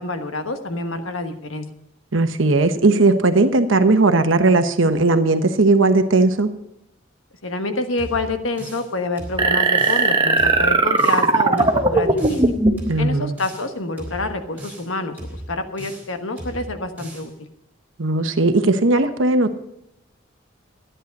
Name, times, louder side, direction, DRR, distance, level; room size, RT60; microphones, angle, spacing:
voice 1, 0.0-1.6 7.4-12.4 13.0-17.3, left 2 dB, 85° left, 7 dB, 1.4 m, -27 dB
voice 2, 2.1-6.5 12.9-13.4 18.0-19.5, right 2 dB, 75° right, 8 dB, 1.0 m, -17 dB
sound 1, 8.0-8.9 9.2-10.1 10.4-11.3 11.6-12.5 12.8-13.7 14.0-14.9 15.2-16.1 16.4-17.3, right 1 dB, 10° right, 3.5 m, -36 dB
sound 2, 9.4-12.9, right 3 dB, 25° right, 1.0 m, -18 dB
13.5 x 10.0 x 5.3 m, 0.82 s
head